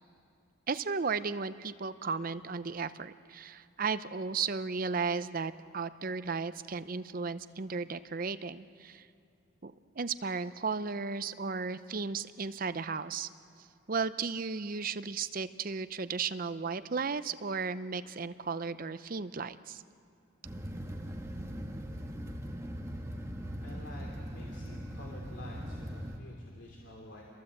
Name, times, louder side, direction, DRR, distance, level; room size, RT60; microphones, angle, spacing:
voice 1, 0.7-9.1 9.6-13.3 13.6-19.8, right 5 dB, 45° right, 13 dB, 0.6 m, -35 dB
sound 1, 20.4-26.2, equal, 15° right, 1.5 m, -40 dB
voice 2, 23.6-27.2, left 1 dB, 60° left, -1 dB, 2.8 m, -50 dB
28.5 x 22.5 x 7.9 m, 2.4 s
head